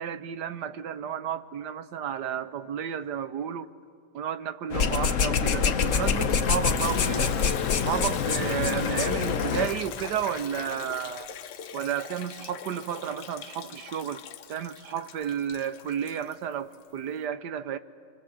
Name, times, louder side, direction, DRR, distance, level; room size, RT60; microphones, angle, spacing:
voice 1, 0.0-3.7 4.1-7.3 7.7-11.3 11.7-14.2 14.5-17.8, right 9 dB, 65° right, 1.3 m, -32 dB
sound 1, 4.7-9.7, left 6 dB, 50° left, 1.1 m, -25 dB
Clapping / Cheering / Applause, 5.2-11.3, left 8 dB, 85° left, 1.8 m, -42 dB
Liquid, 6.8-16.9, left 8 dB, 65° left, 1.4 m, -42 dB
26.0 x 24.0 x 7.7 m
omnidirectional pair, 2.1 m